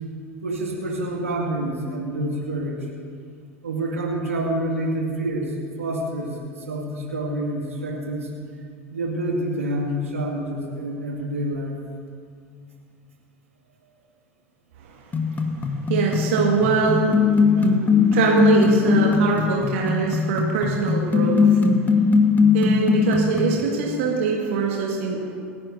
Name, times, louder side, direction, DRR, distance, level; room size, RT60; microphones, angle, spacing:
voice 1, 0.4-2.9 3.6-8.3 8.9-11.7, right 1 dB, 85° right, -2 dB, 2.2 m, -27 dB
voice 2, 14.8-17.2 17.4-17.8 18.1-21.6 22.5-25.4, right 5 dB, 70° right, -2 dB, 1.9 m, -23 dB
sound 1, 15.1-23.6, left 5 dB, 25° left, 1.3 m, -20 dB
28.5 x 10.0 x 2.8 m, 2.3 s
hypercardioid pair, 80°, 7 cm